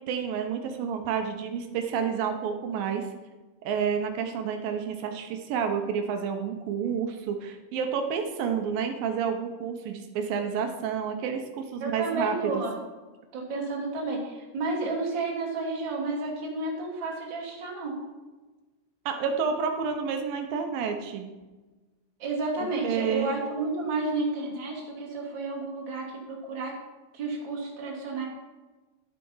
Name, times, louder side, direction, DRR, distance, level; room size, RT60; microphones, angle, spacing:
voice 1, 0.1-3.1 3.6-12.6 19.1-21.3 22.6-23.4, right 7 dB, 75° right, 4 dB, 2.2 m, -30 dB
voice 2, 11.8-12.8 13.3-18.0 22.2-26.8 27.1-28.2, right 3 dB, 35° right, -2 dB, 2.3 m, -31 dB
11.5 x 8.2 x 5.5 m, 1.2 s
omnidirectional pair, 5.0 m